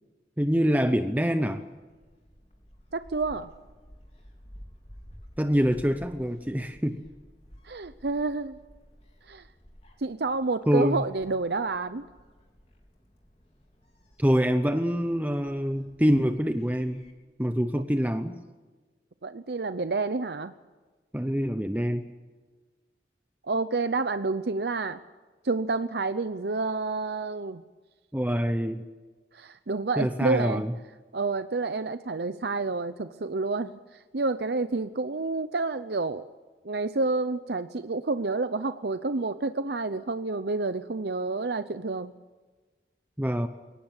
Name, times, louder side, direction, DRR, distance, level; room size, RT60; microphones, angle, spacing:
voice 1, 0.4-1.6 5.4-7.0 10.7-11.1 14.2-17.0 17.4-18.4 21.1-22.0 28.1-28.8 30.0-30.7 43.2-43.5, equal, 10° right, 8 dB, 0.8 m, -25 dB
Gull seagull, 1.7-17.1, equal, 35° left, 3.8 m, -53 dB
voice 2, 2.9-3.5 7.6-8.6 9.3-9.5 10.0-12.0 19.2-20.5 23.4-25.0 25.4-27.6 29.3-30.6 31.1-36.2 36.6-42.1, right 3 dB, 70° right, 11 dB, 0.7 m, -29 dB
22.5 x 18.0 x 8.8 m, 1.3 s
head